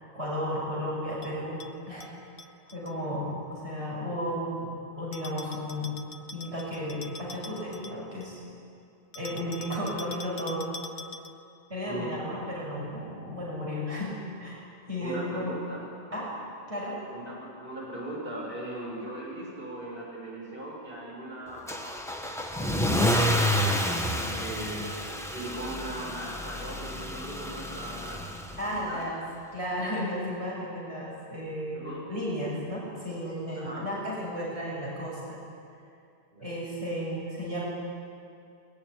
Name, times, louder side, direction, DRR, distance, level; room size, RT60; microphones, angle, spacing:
voice 1, 0.1-1.6 1.9-2.1 2.7-5.9 6.3-8.4 9.2-10.8 11.7-15.5 16.1-16.3 16.7-17.0 28.6-29.2 29.5-35.4 36.4-37.6, equal, 70° right, -6 dB, 7.0 m, -34 dB
Bell, 1.2-2.9 5.1-8.4 9.1-11.5, left 3 dB, 70° left, 1.3 m, -45 dB
voice 2, 11.9-12.2 15.0-15.8 17.1-21.6 22.9-24.9 25.3-28.2 28.5-29.0 31.7-32.0 33.6-33.9 36.3-36.6, right 1 dB, 50° right, -5 dB, 7.2 m, -39 dB
Car / Engine starting / Accelerating revving vroom, 21.7-28.8, equal, ahead, 1.6 m, -29 dB
21.5 x 21.0 x 9.8 m, 2.5 s
omnidirectional pair, 1.2 m